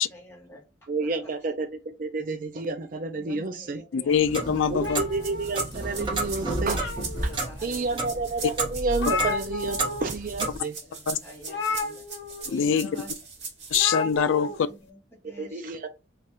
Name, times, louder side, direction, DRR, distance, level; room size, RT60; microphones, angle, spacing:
voice 1, 0.1-1.3 3.1-4.2 7.2-8.0 9.1-9.3 10.8-12.1 12.4-13.1 13.7-13.8 14.3-15.7, left 1 dB, 10° left, 1.0 m, -47 dB
voice 2, 0.9-3.8 4.7-6.9 7.2-7.3 7.6-10.8 15.4-15.9, right 3 dB, 45° right, 0.4 m, -30 dB
voice 3, 3.9-5.0 11.1-11.2 12.5-12.9 13.7-14.5, left 7 dB, 85° left, 0.4 m, -23 dB
Clock, 4.1-10.6, right 2 dB, 25° right, 1.0 m, -32 dB
sound 1, 4.8-6.0 6.5-7.4 8.0-8.1 8.4-8.5 8.7-10.1 10.4-10.6 11.5-12.5 13.7-14.6, left 4 dB, 70° left, 0.9 m, -32 dB
sound 2, 5.1-14.2, right 4 dB, 60° right, 1.9 m, -39 dB
3.2 x 2.4 x 4.2 m
head